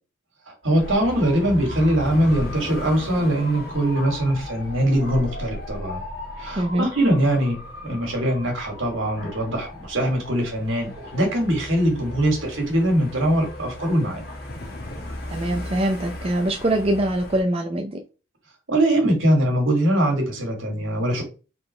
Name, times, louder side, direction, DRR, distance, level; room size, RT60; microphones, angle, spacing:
voice 1, 0.5-6.0 6.4-7.6 7.8-14.2 18.7-21.2, right 1 dB, 70° right, 2.3 m, -22 dB
Dog / Motorcycle, 0.6-17.4, left 1 dB, 50° left, 1.8 m, -36 dB
voice 2, 6.6-6.9 15.3-18.0, right 1 dB, 30° right, 0.5 m, -23 dB
4.3 x 3.9 x 3.2 m
head